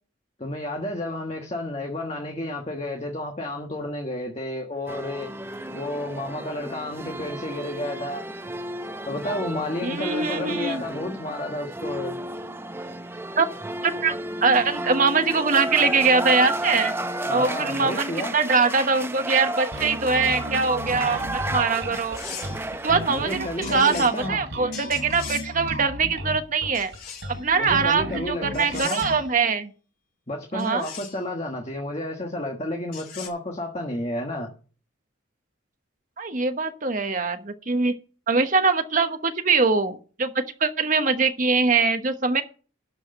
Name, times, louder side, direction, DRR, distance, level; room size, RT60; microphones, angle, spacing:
voice 1, 0.4-5.3 5.7-8.3 9.1-12.2 17.3-18.3 23.1-24.4 27.5-29.1 30.3-34.5, left 1 dB, 30° left, 1.4 m, -31 dB
sound 1, 4.9-24.3, right 1 dB, 10° right, 0.6 m, -33 dB
voice 2, 9.8-10.8 13.4-13.5 13.8-14.1 14.4-16.9 17.3-22.2 22.8-26.9 27.3-29.7 30.5-30.9 36.2-37.9 38.3-42.4, right 4 dB, 40° right, 1.1 m, -22 dB
Bass guitar, 19.7-29.3, equal, 70° right, 3.4 m, -34 dB
sound 2, 21.9-22.7 23.6-24.2 24.7-25.6 26.7-27.4 28.5-29.2 30.6-31.2 32.9-33.3, left 7 dB, 45° left, 3.0 m, -39 dB
12.0 x 4.9 x 7.6 m
head